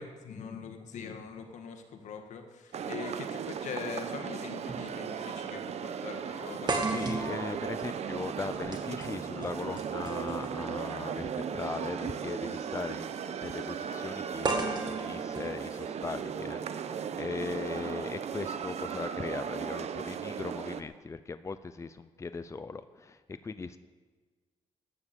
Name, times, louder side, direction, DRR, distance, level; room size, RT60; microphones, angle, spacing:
voice 1, 0.0-2.4 2.9-6.7, left 6 dB, 85° left, 5 dB, 1.8 m, -42 dB
sound 1, 2.7-20.8, right 7 dB, 65° right, 0.8 m, -37 dB
sound 2, 3.5-3.6 4.7-4.9 5.2-5.3 6.7-10.7 11.9-12.1 14.4-16.5, right 3 dB, 35° right, 2.3 m, -35 dB
voice 2, 6.8-23.8, left 4 dB, 25° left, 11 dB, 0.6 m, -39 dB
14.5 x 9.8 x 7.0 m, 1.4 s
cardioid pair, 95°, 12 cm